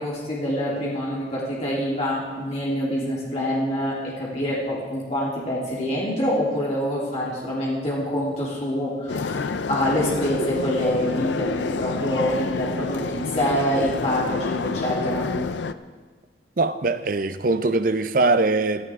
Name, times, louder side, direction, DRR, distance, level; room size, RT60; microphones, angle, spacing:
voice 1, 0.0-15.3, equal, 40° left, 3.5 m, -26 dB
sound 1, 9.1-15.7, left 4 dB, 80° left, 0.5 m, -28 dB
voice 2, 16.6-18.9, right 3 dB, 50° right, 0.6 m, -22 dB
16.0 x 14.5 x 3.7 m
head